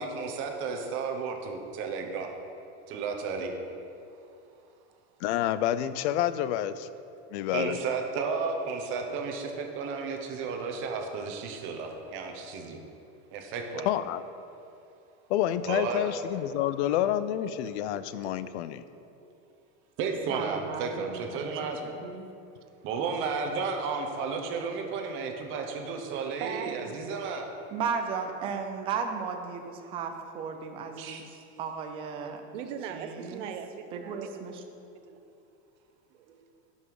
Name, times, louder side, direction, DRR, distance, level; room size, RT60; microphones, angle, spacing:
voice 1, 0.0-2.3 2.9-3.5 7.5-12.8 13.3-13.9 15.7-16.0 20.0-21.8 22.8-27.5 31.0-31.2, right 5 dB, 35° right, 3 dB, 1.0 m, -33 dB
voice 2, 5.2-6.9 7.3-7.8 13.9-14.2 15.3-18.8, left 12 dB, 70° left, 14 dB, 0.5 m, -28 dB
voice 3, 17.4-18.3 26.1-27.0 30.9-31.0 32.5-34.5 35.0-35.2 36.1-36.5, right 8 dB, 80° right, 8 dB, 0.9 m, -41 dB
voice 4, 20.3-22.3 27.7-32.4 32.9-33.5 33.9-34.6, right 6 dB, 15° right, 5 dB, 0.3 m, -35 dB
11.0 x 5.6 x 4.8 m, 2.6 s
supercardioid pair, 170°, 35 cm